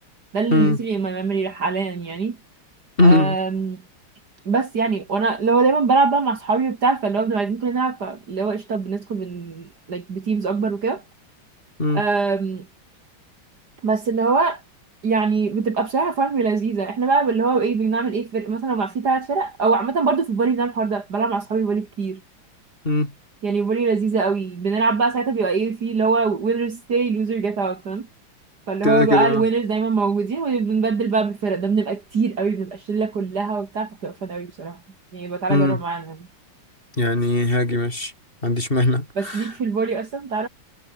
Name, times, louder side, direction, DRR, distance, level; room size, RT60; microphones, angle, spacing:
voice 1, 0.3-2.4 3.0-3.8 4.5-11.0 11.9-12.7 13.8-14.6 15.0-22.2 23.4-28.1 28.7-34.8 35.1-36.2 39.2-40.5, right 4 dB, 50° right, 2.6 m, -23 dB
voice 2, 3.0-3.4 11.8-12.0 22.8-23.1 28.8-29.4 35.5-35.8 37.0-38.1 38.4-39.5, left 2 dB, 25° left, 4.4 m, -19 dB
omnidirectional pair, 2.3 m